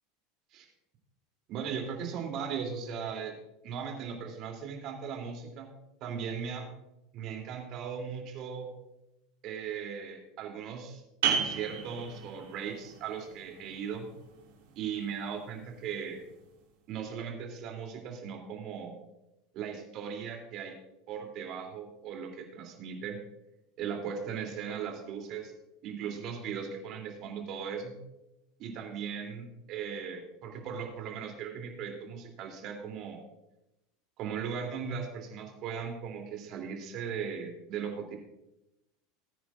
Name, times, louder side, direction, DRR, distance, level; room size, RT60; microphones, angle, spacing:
voice 1, 1.5-3.3 3.6-5.7 6.0-6.7 7.1-8.7 9.4-11.0 11.3-14.1 14.7-16.2 16.9-19.0 19.5-20.7 21.1-23.2 23.8-25.5 25.8-28.0 28.6-33.2 34.2-38.2, right 7 dB, 50° right, 2 dB, 3.0 m, -38 dB
sound 1, 11.2-16.6, right 7 dB, 70° right, 3.0 m, -36 dB
19.5 x 9.4 x 2.5 m, 0.93 s
hypercardioid pair, 85°, 0 cm